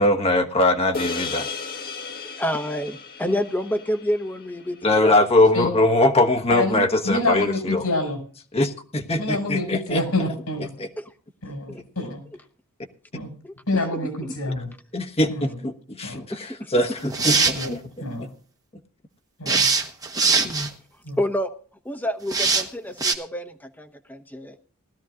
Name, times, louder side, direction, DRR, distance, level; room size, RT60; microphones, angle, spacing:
voice 1, 0.0-1.5 4.8-7.8 8.5-10.0 10.8-10.9 14.9-17.4 17.7-17.8 18.2-18.3 20.4-20.7, left 1 dB, 25° left, 5 dB, 1.2 m, -21 dB
sound 1, 0.9-5.5, left 4 dB, 45° left, 1.5 m, -35 dB
voice 2, 2.2-5.3 11.0-11.1 11.7-11.8 13.4-13.5 14.2-14.3 16.3-16.7 21.2-21.5 21.8-24.6, equal, 10° left, 5 dB, 1.0 m, -28 dB
voice 3, 6.5-8.2 9.2-10.7 11.4-12.2 13.1-13.3 13.7-14.7 15.3-15.6 16.0-16.2 17.2-17.7 18.0-18.3 19.4-19.7 21.0-21.2, left 2 dB, 80° left, 4 dB, 5.5 m, -27 dB
sound 2, 17.0-17.7 19.5-20.7 22.3-22.6 23.0-23.1, right 4 dB, 15° right, 1.3 m, -21 dB
20.0 x 12.5 x 2.5 m, 0.41 s
head